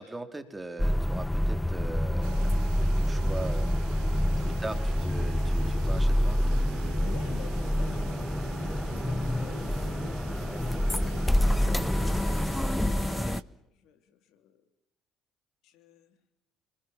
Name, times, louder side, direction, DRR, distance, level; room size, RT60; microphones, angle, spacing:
voice 1, 0.0-2.5 3.0-3.7 4.6-6.4, right 2 dB, 20° right, 8 dB, 4.0 m, -40 dB
sound 1, 0.8-13.4, left 1 dB, 10° left, 0.8 m, -27 dB
sound 2, 2.2-13.4, right 15 dB, 80° right, 1.3 m, -45 dB
voice 2, 4.1-4.9 6.9-8.1 8.8-12.3 13.2-14.6 15.6-16.2, left 8 dB, 75° left, 10 dB, 3.2 m, -50 dB
27.5 x 21.0 x 7.4 m, 0.81 s
hypercardioid pair, 60°, 0 cm